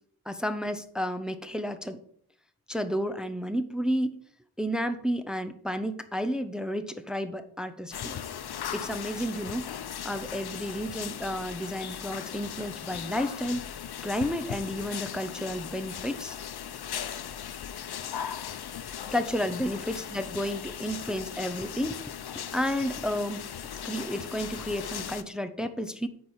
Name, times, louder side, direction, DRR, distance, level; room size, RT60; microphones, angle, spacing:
voice 1, 0.3-2.0 2.7-4.2 4.6-8.2 8.7-9.6 10.0-13.6 14.0-16.4 19.1-22.0 22.5-23.5 23.8-26.1, equal, ahead, 9 dB, 0.6 m, -31 dB
sound 1, 7.9-25.2, left 9 dB, 80° left, 0.7 m, -38 dB
8.8 x 4.7 x 7.2 m, 0.62 s
wide cardioid pair, 130°, 38 cm